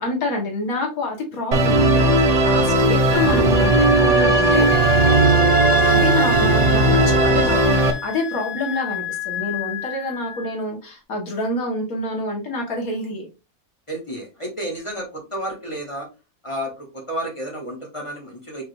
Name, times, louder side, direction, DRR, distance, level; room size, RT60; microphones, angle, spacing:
voice 1, 0.0-4.7 5.8-13.3, left 2 dB, 80° left, 0 dB, 1.9 m, -27 dB
Musical instrument, 1.5-7.9, right 2 dB, 55° right, 0.4 m, -17 dB
Wind instrument woodwind instrument, 3.1-10.5, left 5 dB, ahead, 0.6 m, -26 dB
voice 2, 13.9-16.1 16.4-18.6, right 1 dB, 25° left, -1 dB, 1.2 m, -31 dB
4.9 x 2.5 x 3.1 m, 0.29 s
omnidirectional pair, 1.5 m